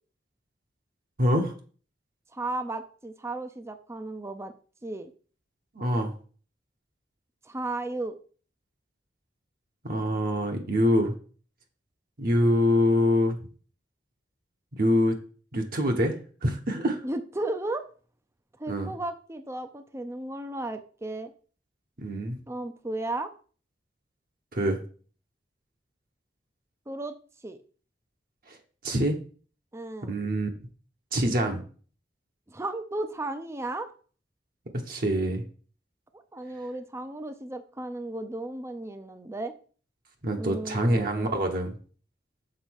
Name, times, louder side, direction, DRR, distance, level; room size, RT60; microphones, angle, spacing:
voice 1, 1.2-1.5 5.7-6.1 9.8-11.1 12.2-13.4 14.7-15.2 15.5-17.0 18.7-18.9 22.0-22.4 24.5-24.8 28.5-28.6 28.8-29.2 30.1-30.5 31.1-31.6 34.9-35.4 40.2-41.8, equal, 55° right, 2 dB, 1.2 m, -25 dB
voice 2, 2.3-4.5 4.8-5.1 7.5-8.2 17.0-17.9 18.6-21.3 22.5-23.3 26.9-27.1 27.4-27.6 29.7-30.1 32.5-33.9 36.1-39.5 40.4-41.4, right 2 dB, 15° right, 8 dB, 0.5 m, -34 dB
6.7 x 4.0 x 6.3 m, 0.41 s
head